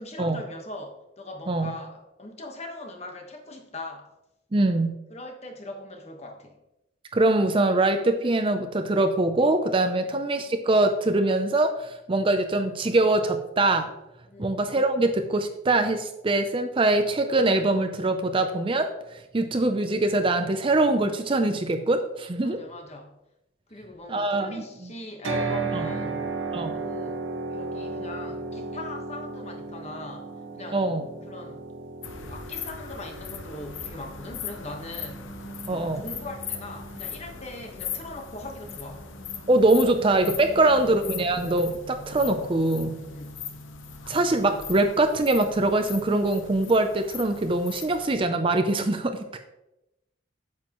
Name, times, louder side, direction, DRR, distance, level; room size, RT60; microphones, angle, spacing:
voice 1, 0.0-4.1 5.1-6.6 9.9-10.2 14.3-14.6 22.4-23.2 23.7-26.3 26.7-30.9 31.2-31.6 32.1-35.3 35.6-39.1 40.5-41.0 43.0-43.5, left 2 dB, 35° left, 3 dB, 1.2 m, -41 dB
voice 2, 4.5-4.9 7.1-13.9 14.4-18.9 19.3-22.6 24.1-24.9 25.7-25.9 26.5-26.8 30.7-31.0 35.7-36.0 39.5-43.0 44.1-49.2, right 2 dB, 25° right, 7 dB, 0.5 m, -23 dB
sound 1, 25.2-39.4, right 3 dB, 85° right, 1.5 m, -36 dB
sound 2, 32.0-48.1, left 6 dB, 80° left, 0.9 m, -39 dB
9.0 x 7.5 x 3.0 m, 0.91 s
head